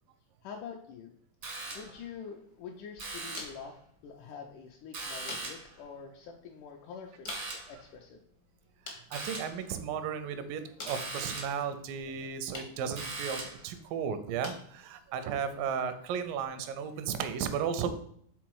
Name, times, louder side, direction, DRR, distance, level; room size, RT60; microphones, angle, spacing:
voice 1, 0.4-1.1 1.7-8.2, left 6 dB, 80° left, 1 dB, 2.0 m, -46 dB
sound 1, 1.4-2.1 3.0-3.6 4.9-5.8 7.3-7.8 9.1-9.6 10.9-11.7 13.0-13.7, right 3 dB, 65° right, 0.8 m, -40 dB
sound 2, 2.1-17.2, left 3 dB, 60° left, 0.9 m, -51 dB
voice 2, 9.1-18.0, right 7 dB, 85° right, 10 dB, 2.3 m, -34 dB
6.1 x 3.8 x 4.6 m, 0.66 s
omnidirectional pair, 3.9 m